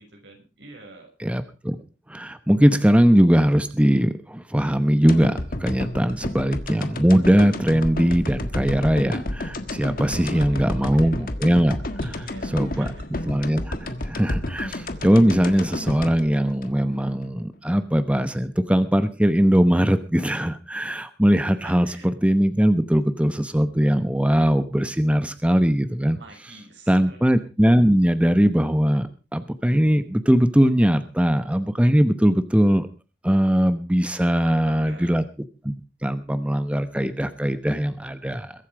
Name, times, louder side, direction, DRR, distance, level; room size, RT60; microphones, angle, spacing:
voice 1, 0.0-1.1 10.1-11.1 12.0-13.3 21.6-22.1 26.2-27.2 34.4-35.2, right 2 dB, 85° right, 2 dB, 6.4 m, -46 dB
voice 2, 1.2-1.8 2.1-11.8 12.5-12.9 13.3-26.2 26.9-32.9 33.2-35.2 35.6-35.7 36.0-38.5, equal, 5° right, 11 dB, 0.9 m, -20 dB
sound 1, 5.1-17.3 17.7-17.8, left 1 dB, 55° left, 1.5 m, -31 dB
22.0 x 8.3 x 5.0 m, 0.33 s
head